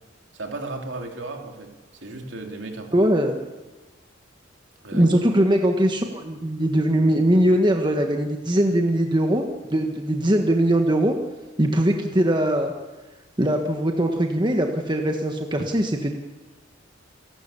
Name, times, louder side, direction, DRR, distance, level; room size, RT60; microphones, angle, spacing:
voice 1, 0.3-1.7 2.0-3.1 4.8-5.1, right 2 dB, 65° right, 3 dB, 3.2 m, -35 dB
voice 2, 2.9-3.4 4.9-9.4 9.7-11.1 11.6-12.7 13.4-16.1, right 1 dB, 25° right, 3 dB, 1.4 m, -21 dB
28.5 x 12.5 x 8.4 m, 1.2 s
head